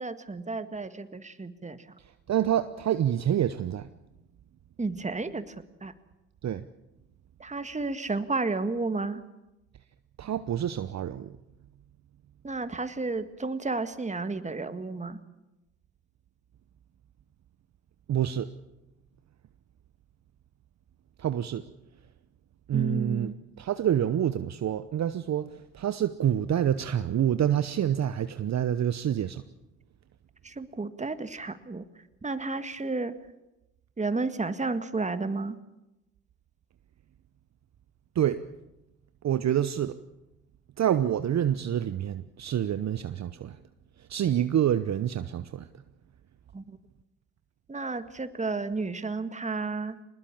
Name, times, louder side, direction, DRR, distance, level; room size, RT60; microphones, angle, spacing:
voice 1, 0.0-1.8 4.8-5.6 5.8-5.9 7.4-9.2 12.4-15.2 22.7-23.3 30.4-31.8 32.2-33.2 34.0-35.6 46.5-46.8 47.7-50.0, right 3 dB, 20° right, 11 dB, 1.8 m, -32 dB
voice 2, 2.3-3.9 6.4-6.6 10.2-11.3 18.1-18.5 21.2-21.6 22.7-23.3 23.6-29.4 38.1-38.4 39.2-40.0 40.8-43.6 44.1-45.7, right 10 dB, 45° right, 12 dB, 0.9 m, -27 dB
24.5 x 20.0 x 7.3 m, 0.95 s
hypercardioid pair, 55°, 39 cm